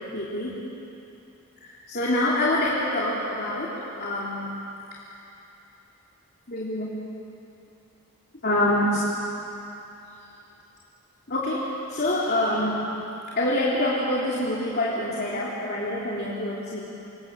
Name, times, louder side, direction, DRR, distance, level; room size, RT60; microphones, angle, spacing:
voice 1, 0.1-0.6 1.6-3.7 4.0-4.5 6.5-6.9 8.4-9.0 11.3-11.6 11.9-12.8 13.3-16.8, left 1 dB, 45° left, -7 dB, 3.5 m, -26 dB
27.5 x 26.0 x 7.7 m, 2.9 s
head